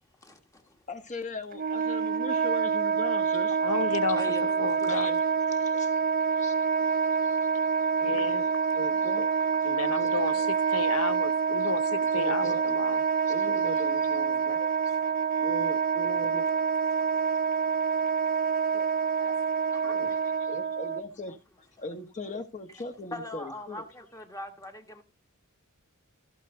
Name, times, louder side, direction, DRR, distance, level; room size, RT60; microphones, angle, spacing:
voice 1, 0.2-0.8 4.2-5.2 5.6-5.8 6.2-7.6 9.2-9.3 14.5-15.4 16.9-20.5 22.3-22.4 23.1-25.0, left 2 dB, 15° left, 1.5 m, -45 dB
voice 2, 0.9-3.6 4.9-5.1 5.6-8.1 8.6-9.4 9.9-10.5 12.1-12.7 13.3-14.6 15.4-16.7 19.8-20.2 20.5-21.4 21.8-23.8, left 2 dB, 35° left, 1.4 m, -40 dB
Wind instrument woodwind instrument, 1.5-21.0, right 6 dB, 40° right, 0.5 m, -27 dB
voice 3, 3.6-4.3 4.6-5.2 5.4-5.7 8.0-8.6 9.6-13.0, left 5 dB, 70° left, 0.7 m, -33 dB
14.5 x 6.7 x 3.9 m
head